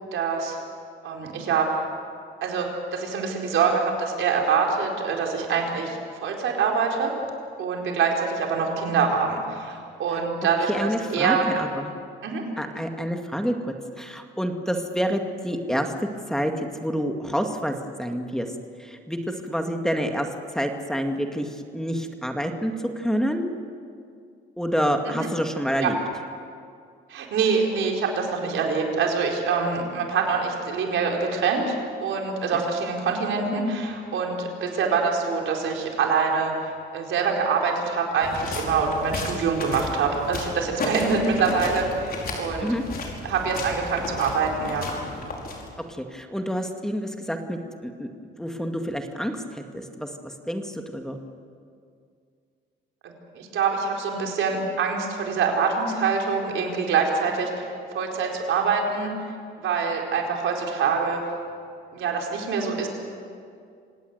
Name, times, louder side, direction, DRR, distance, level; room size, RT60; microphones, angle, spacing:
voice 1, 0.1-0.6 1.0-1.7 2.4-7.1 7.6-11.5 12.2-12.4 25.1-25.3 25.8-25.9 27.1-31.7 32.0-42.7 43.2-44.9 53.0-57.7 57.9-59.1 59.6-61.2 61.9-62.9, right 5 dB, 80° right, 1 dB, 4.5 m, -25 dB
voice 2, 10.7-11.9 12.6-13.5 14.0-15.9 16.3-18.5 18.8-23.5 24.6-26.0 32.5-32.6 41.0-41.1 42.6-42.8 45.9-48.1 48.4-51.2, equal, 5° left, 4 dB, 2.2 m, -28 dB
sound 1, 38.2-45.9, left 3 dB, 50° left, 5.2 m, -33 dB
27.0 x 18.5 x 8.1 m, 2.3 s
cardioid pair, 90°, 20 cm